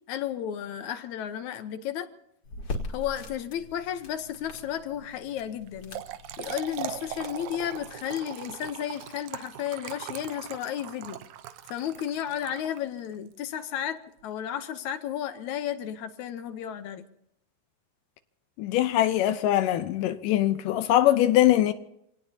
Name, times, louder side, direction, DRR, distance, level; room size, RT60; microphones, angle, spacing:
voice 1, 0.1-2.1 2.9-6.0 6.4-11.2 11.7-17.1, left 10 dB, 70° left, 2.1 m, -33 dB
sound 1, 2.4-7.9, left 2 dB, 45° left, 2.8 m, -41 dB
Trickle dribble / Fill (with liquid), 5.7-13.1, right 11 dB, 75° right, 2.0 m, -40 dB
voice 2, 18.6-21.7, left 13 dB, 85° left, 2.4 m, -22 dB
27.5 x 18.5 x 2.8 m
omnidirectional pair, 3.8 m